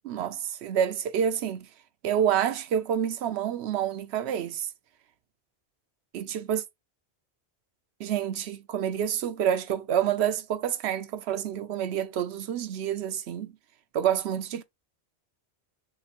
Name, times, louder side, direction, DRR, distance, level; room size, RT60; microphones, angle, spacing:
voice 1, 0.0-1.7 2.0-4.7 6.1-6.6 8.0-13.5 13.9-14.6, right 9 dB, 75° right, 0.9 m, -28 dB
3.4 x 3.0 x 4.1 m
omnidirectional pair, 1.1 m